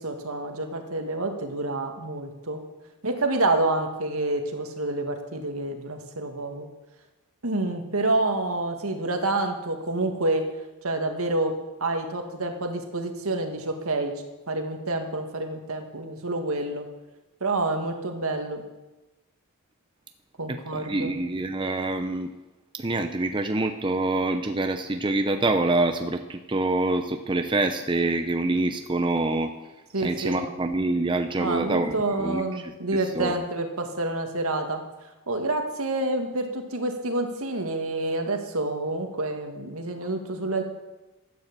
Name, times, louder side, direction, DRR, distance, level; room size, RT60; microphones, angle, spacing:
voice 1, 0.0-2.6 3.0-6.7 7.4-10.5 10.8-11.6 11.8-16.9 17.4-18.6 20.4-21.1 29.9-30.5 31.4-40.6, right 2 dB, 70° right, 5 dB, 2.0 m, -28 dB
voice 2, 20.7-22.3 22.8-29.5 30.0-32.4 33.1-33.3, right 2 dB, 20° right, 6 dB, 0.6 m, -26 dB
13.5 x 9.6 x 7.4 m, 1.1 s
head